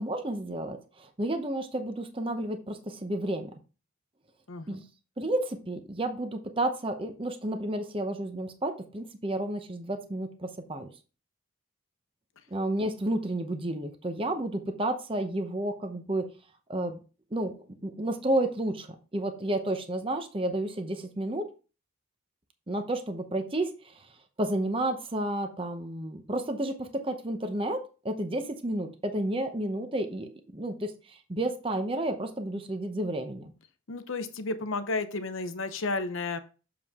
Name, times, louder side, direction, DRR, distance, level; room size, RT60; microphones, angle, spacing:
voice 1, 0.0-3.5 4.7-4.8 5.2-10.9 12.5-16.3 16.7-17.0 17.3-17.6 17.8-21.5 22.7-24.1 24.4-33.5, right 1 dB, 25° right, 6 dB, 0.7 m, -31 dB
voice 2, 4.5-4.8 33.9-36.4, left 3 dB, 65° left, 10 dB, 0.8 m, -32 dB
7.1 x 4.9 x 3.6 m, 0.33 s
head